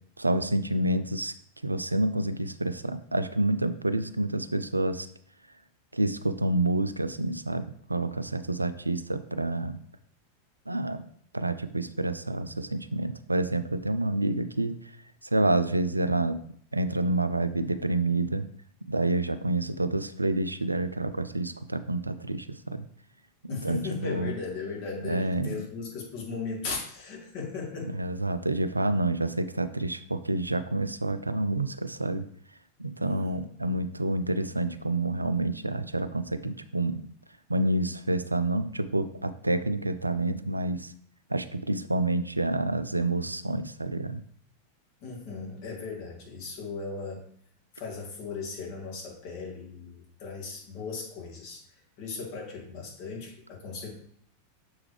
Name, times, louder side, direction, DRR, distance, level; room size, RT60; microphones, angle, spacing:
voice 1, 0.2-1.3 1.6-5.1 5.9-9.8 10.7-11.1 11.3-14.8 15.3-16.4 16.7-18.4 18.9-22.9 23.5-24.3 25.0-25.6 27.9-32.2 32.8-37.1 37.5-40.9 41.3-44.2, right 2 dB, 85° right, 12 dB, 0.4 m, -28 dB
voice 2, 23.5-28.0 33.0-33.4 45.0-47.2 47.7-53.9, left 4 dB, 45° left, -2 dB, 2.3 m, -37 dB
7.0 x 4.7 x 3.3 m, 0.63 s
figure-of-eight pair, 90°, 0 cm